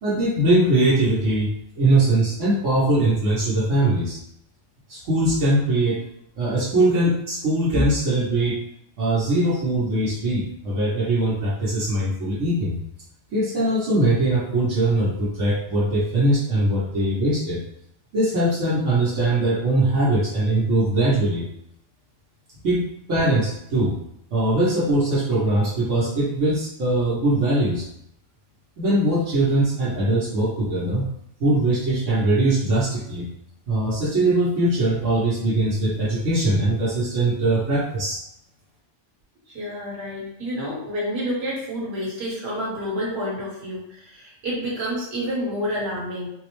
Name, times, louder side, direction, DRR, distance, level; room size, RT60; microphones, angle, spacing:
voice 1, 0.0-4.2 4.9-6.0 6.4-8.6 9.0-12.8 13.3-17.6 18.1-21.5 22.6-24.0 24.3-27.8 28.8-31.0 31.4-33.3 33.7-38.2, right 1 dB, 85° right, -7 dB, 1.3 m, -21 dB
voice 2, 39.5-46.3, equal, 55° right, -5 dB, 1.5 m, -29 dB
4.0 x 2.1 x 3.0 m, 0.75 s
omnidirectional pair, 1.2 m